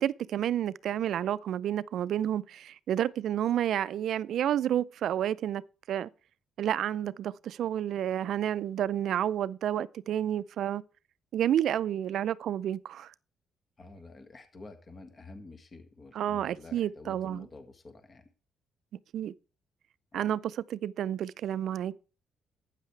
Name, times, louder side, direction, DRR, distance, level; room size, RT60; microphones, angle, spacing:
voice 1, 0.0-5.6 5.9-6.1 6.6-10.8 11.3-13.1 16.2-17.5 19.1-19.3 20.1-20.4 20.7-22.0, right 10 dB, 70° right, 0.4 m, -30 dB
voice 2, 13.8-18.3 20.1-20.3, left 3 dB, 35° left, 1.9 m, -49 dB
12.0 x 9.0 x 3.3 m
cardioid pair, 90°, 0 cm